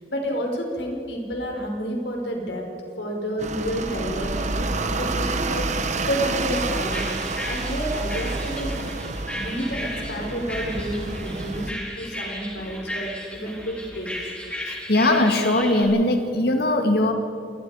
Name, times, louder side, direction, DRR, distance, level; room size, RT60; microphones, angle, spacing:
voice 1, 0.0-2.6 3.0-4.3 4.8-7.1 7.4-8.8 9.3-14.3, equal, 80° left, 1 dB, 5.0 m, -30 dB
sound 1, 3.4-11.7, right 3 dB, 40° right, 1.2 m, -29 dB
sound 2, 6.3-15.8, left 1 dB, 5° left, 4.2 m, -35 dB
voice 2, 14.6-17.1, left 1 dB, 60° left, 4 dB, 2.4 m, -20 dB
27.0 x 21.0 x 5.0 m, 2.6 s
head